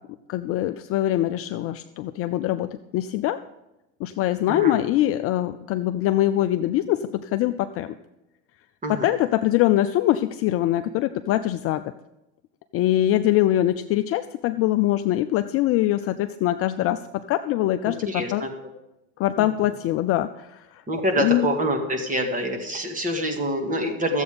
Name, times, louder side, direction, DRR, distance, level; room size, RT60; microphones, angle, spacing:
voice 1, 0.3-3.4 4.0-7.9 8.9-11.8 12.7-18.5 19.2-20.8 21.2-21.5, left 14 dB, 35° left, 10 dB, 0.4 m, -23 dB
voice 2, 4.5-4.8 8.8-9.1 17.9-18.5 19.4-19.7 20.9-24.2, right 1 dB, 20° right, 3 dB, 2.1 m, -26 dB
13.5 x 7.9 x 5.2 m, 0.96 s
hypercardioid pair, 105°, 41 cm